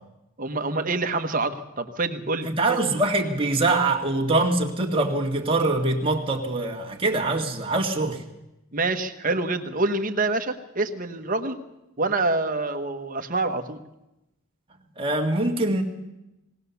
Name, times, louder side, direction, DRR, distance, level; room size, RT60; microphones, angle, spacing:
voice 1, 0.4-2.5 8.7-11.6 12.0-13.8, right 3 dB, 40° right, 7 dB, 1.2 m, -26 dB
voice 2, 2.4-8.2 15.0-15.8, right 2 dB, 25° right, 0 dB, 1.9 m, -23 dB
19.5 x 19.0 x 7.1 m, 0.93 s
head